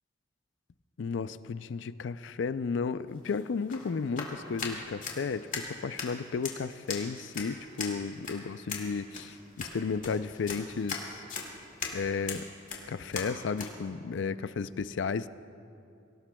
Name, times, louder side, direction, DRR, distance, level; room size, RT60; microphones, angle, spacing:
voice 1, 1.0-11.2 11.9-12.5 12.9-15.3, left 5 dB, 70° left, 14 dB, 0.4 m, -33 dB
sound 1, 3.1-13.7, left 5 dB, 45° left, 2.0 m, -40 dB
23.5 x 17.5 x 2.3 m, 2.6 s
head